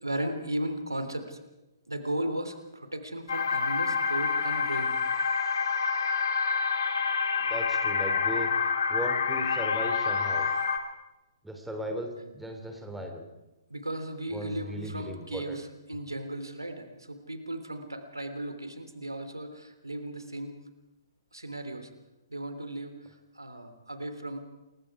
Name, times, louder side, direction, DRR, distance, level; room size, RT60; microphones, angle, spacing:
voice 1, 0.0-1.4 1.9-4.9 13.7-20.6 21.3-21.9 22.3-23.0 23.3-24.4, right 1 dB, 85° right, 8 dB, 3.3 m, -36 dB
sound 1, 3.3-10.8, left 5 dB, 55° left, 3.1 m, -27 dB
voice 2, 7.4-8.5 8.9-10.5 11.4-13.2 14.3-15.6, equal, 5° right, 3 dB, 3.1 m, -37 dB
28.5 x 22.0 x 4.9 m, 0.99 s
figure-of-eight pair, 125°, 2 cm